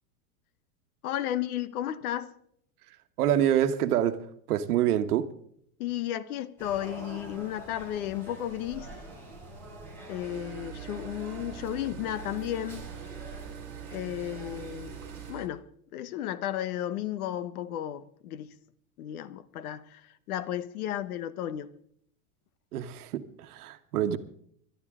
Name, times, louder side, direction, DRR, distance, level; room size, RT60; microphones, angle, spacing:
voice 1, 1.0-2.3 5.8-8.9 10.1-12.9 13.9-15.0 15.3-15.6 15.9-18.5 19.0-20.0 20.3-21.7, left 12 dB, 75° left, 1.1 m, -33 dB
voice 2, 3.2-4.2 4.5-5.2 22.7-24.2, right 11 dB, 85° right, 1.3 m, -26 dB
sound 1, 6.6-15.3, right 2 dB, 5° left, 3.6 m, -46 dB
sound 2, 10.2-15.5, right 11 dB, 45° right, 2.5 m, -44 dB
22.0 x 11.5 x 3.6 m
supercardioid pair, 170°, 44 cm